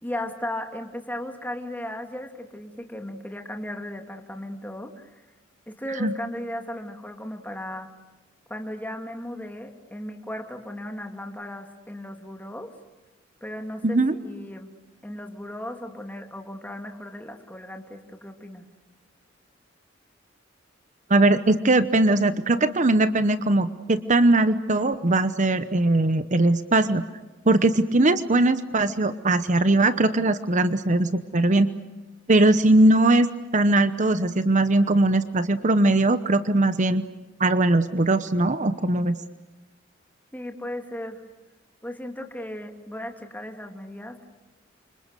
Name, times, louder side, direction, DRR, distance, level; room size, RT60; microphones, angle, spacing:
voice 1, 0.0-5.2 5.7-7.9 8.5-12.7 13.4-14.7 15.0-18.7 40.3-41.2 41.8-44.3, left 1 dB, 10° left, 4 dB, 2.7 m, -36 dB
voice 2, 13.8-14.1 21.1-27.0 27.5-31.7 32.3-33.3 33.5-37.0 37.4-39.2, right 2 dB, 40° right, 12 dB, 0.9 m, -20 dB
29.5 x 26.5 x 6.8 m, 1.1 s
head